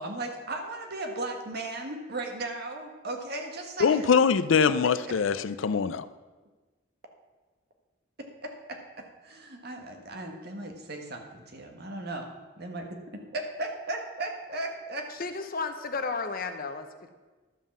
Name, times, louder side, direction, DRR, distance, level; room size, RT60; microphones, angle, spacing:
voice 1, 0.0-4.1 4.8-4.9 8.7-8.8 9.2-12.3 12.6-12.9 13.3-15.1, right 2 dB, 55° right, 3 dB, 1.6 m, -36 dB
voice 2, 3.8-6.1, left 6 dB, 80° left, 13 dB, 0.5 m, -23 dB
voice 3, 15.2-16.9, left 4 dB, 50° left, 7 dB, 0.9 m, -32 dB
12.0 x 5.5 x 7.2 m, 1.3 s
head